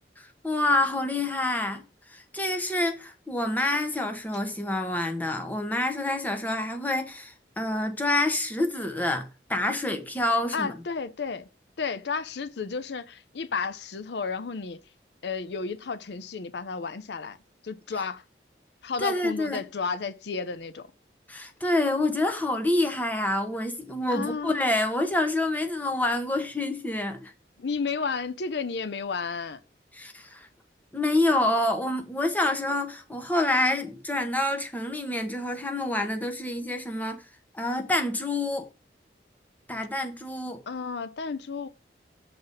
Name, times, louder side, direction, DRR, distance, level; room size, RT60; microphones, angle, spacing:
voice 1, 0.2-1.8 2.1-10.7 19.0-19.7 21.3-27.3 29.9-30.5 30.9-37.2 37.5-38.7 39.7-40.6, left 1 dB, 10° left, 0.9 m, -27 dB
voice 2, 10.5-11.5 11.8-14.8 15.2-17.4 17.6-18.2 18.8-20.9 24.1-24.6 27.6-29.6 40.7-41.7, left 5 dB, 70° left, 0.5 m, -32 dB
6.7 x 4.0 x 5.2 m
head